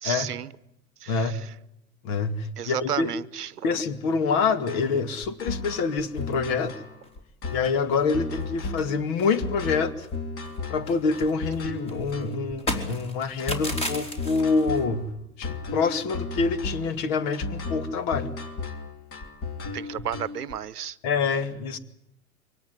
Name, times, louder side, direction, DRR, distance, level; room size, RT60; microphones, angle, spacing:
voice 1, 0.0-0.5 1.0-1.5 2.6-3.6 19.7-21.0, right 9 dB, 85° right, 19 dB, 1.0 m, -33 dB
voice 2, 1.1-1.4 2.0-3.1 3.6-6.7 7.5-10.1 10.7-15.1 15.4-18.3 21.0-21.8, left 4 dB, 45° left, 12 dB, 2.3 m, -26 dB
sound 1, 4.7-20.5, left 3 dB, 30° left, 2.8 m, -35 dB
sound 2, 6.1-6.7 7.0-7.1 7.5-7.6 7.9-8.5 8.8-10.2 10.4-14.8, left 1 dB, 15° left, 3.4 m, -36 dB
24.0 x 18.0 x 9.7 m, 0.82 s
hypercardioid pair, 105°, 45 cm